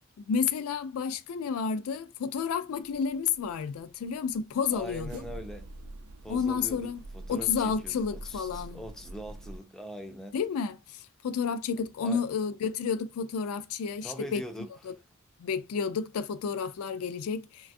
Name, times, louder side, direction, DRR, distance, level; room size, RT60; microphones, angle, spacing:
voice 1, 0.3-5.1 6.3-7.0 7.3-8.8 10.3-10.8 11.2-14.4 14.8-14.9 15.4-17.7, left 6 dB, 80° left, 0.3 m, -30 dB
sound 1, 2.7-9.6, right 2 dB, 75° right, 0.5 m, -45 dB
voice 2, 4.7-5.7 6.2-10.4 12.0-12.2 14.0-15.0, equal, ahead, 0.3 m, -42 dB
3.2 x 2.3 x 2.5 m
head